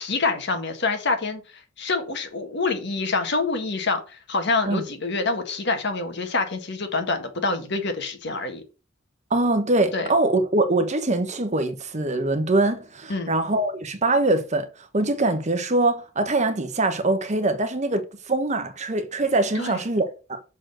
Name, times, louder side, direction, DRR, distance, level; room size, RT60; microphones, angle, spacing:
voice 1, 0.0-8.6 9.9-10.1 13.1-13.3 19.5-19.8, left 3 dB, 60° left, 1.6 m, -26 dB
voice 2, 9.3-14.7 14.9-20.4, right 2 dB, 35° right, 1.1 m, -23 dB
6.4 x 4.1 x 6.4 m
head